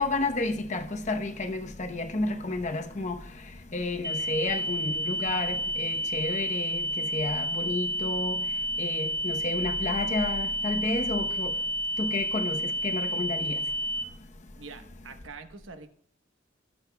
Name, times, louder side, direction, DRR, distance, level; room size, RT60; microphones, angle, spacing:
voice 1, 0.0-3.2 3.7-8.4 8.8-11.5 12.0-12.6 12.8-13.6, left 2 dB, 35° left, 0.8 m, -31 dB
sound 1, 4.0-14.0, left 1 dB, 20° right, 0.7 m, -30 dB
voice 2, 14.6-15.9, right 4 dB, 70° right, 1.0 m, -45 dB
20.0 x 6.6 x 2.2 m
head